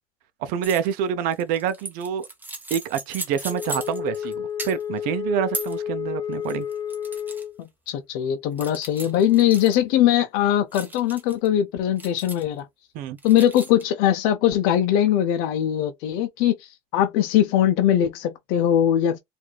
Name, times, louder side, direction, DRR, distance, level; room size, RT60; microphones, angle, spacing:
voice 1, 0.4-2.3 2.7-6.7 12.9-13.2, right 8 dB, 65° right, 0.6 m, -27 dB
sound 1, 0.6-0.9 1.3-4.3 4.6-5.0 5.5-5.8 6.3-7.4 7.9-8.0 8.6-9.8 10.7-11.5 12.0-12.6 13.2-13.8, right 2 dB, 10° right, 1.0 m, -37 dB
Wind instrument woodwind instrument, 3.4-7.6, left 8 dB, 30° left, 0.6 m, -31 dB
voice 2, 7.6-12.7 13.2-19.2, left 11 dB, 70° left, 0.6 m, -21 dB
4.6 x 2.6 x 2.3 m
cardioid pair, 135°, 16 cm